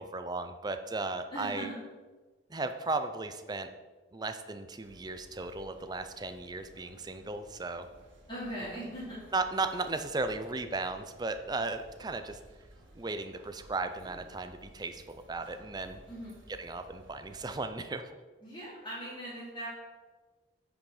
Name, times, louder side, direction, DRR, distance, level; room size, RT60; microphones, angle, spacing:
voice 1, 0.0-1.7 2.5-3.7 4.1-7.9 9.3-12.4 13.0-16.0 16.6-18.1, right 3 dB, 20° right, 9 dB, 0.5 m, -36 dB
voice 2, 1.3-1.7 8.3-9.2 16.1-16.4 18.4-19.7, right 1 dB, 25° left, -10 dB, 2.9 m, -40 dB
sound 1, 4.8-17.6, equal, 90° right, 1.9 m, -56 dB
9.1 x 5.1 x 4.9 m, 1.3 s
head